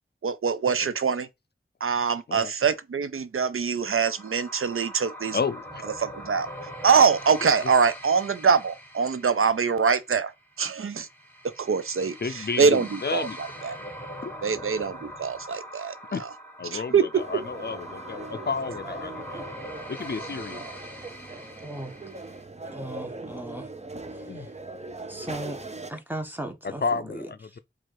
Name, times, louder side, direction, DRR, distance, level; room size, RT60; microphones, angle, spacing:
voice 1, 0.2-1.3 1.8-5.4 6.0-6.5 6.8-10.3 10.6-11.1 11.6-13.8 14.4-15.9 16.7-17.0, right 5 dB, 90° right, 0.5 m, -24 dB
sound 1, 3.8-22.4, equal, 10° left, 1.3 m, -42 dB
voice 2, 5.3-5.9 7.4-7.5 12.0-13.4 14.2-14.3 16.1-16.3 16.6-19.5 19.9-20.7 24.3-24.5 26.6-27.6, left 5 dB, 50° left, 0.4 m, -32 dB
sound 2, 17.1-25.9, right 2 dB, 30° right, 0.6 m, -40 dB
voice 3, 22.7-23.7 25.1-25.6 25.9-26.8, right 1 dB, 10° right, 1.0 m, -36 dB
4.5 x 2.4 x 4.5 m
wide cardioid pair, 45°, 21 cm